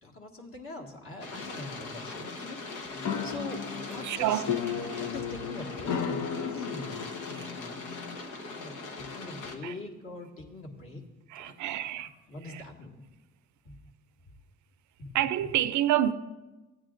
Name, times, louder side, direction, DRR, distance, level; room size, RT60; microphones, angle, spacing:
voice 1, 0.0-4.4 4.9-7.8 8.5-11.0 11.3-11.5 12.0-13.0 13.7-13.8 15.0-15.2, left 2 dB, 45° left, 1.8 m, -43 dB
sound 1, 1.2-9.6, left 3 dB, 85° left, 1.1 m, -41 dB
sound 2, 3.0-8.2, left 7 dB, 70° left, 0.8 m, -35 dB
voice 2, 4.0-4.5 4.8-5.0 7.3-7.5 9.6-9.7 11.3-12.1 12.4-12.6 15.1-16.1, right 12 dB, 70° right, 0.5 m, -28 dB
16.0 x 9.1 x 2.5 m
cardioid pair, 90°, 30 cm